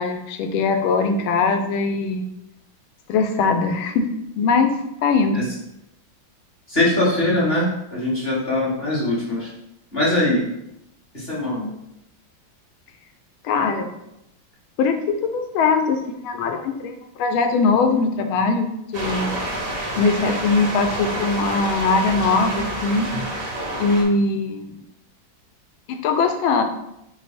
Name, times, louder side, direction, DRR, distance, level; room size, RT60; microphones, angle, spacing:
voice 1, 0.0-2.2 3.1-4.7 5.0-5.5 13.4-13.9 14.8-19.3 20.0-23.1 23.8-24.8 25.9-26.6, left 4 dB, 90° left, 7 dB, 1.4 m, -21 dB
voice 2, 6.7-9.5 9.9-10.5 11.1-11.7, left 1 dB, 35° left, -6 dB, 1.2 m, -22 dB
sound 1, 18.9-24.0, right 1 dB, 65° right, 0.5 m, -28 dB
4.8 x 2.0 x 4.2 m, 0.83 s
omnidirectional pair, 2.2 m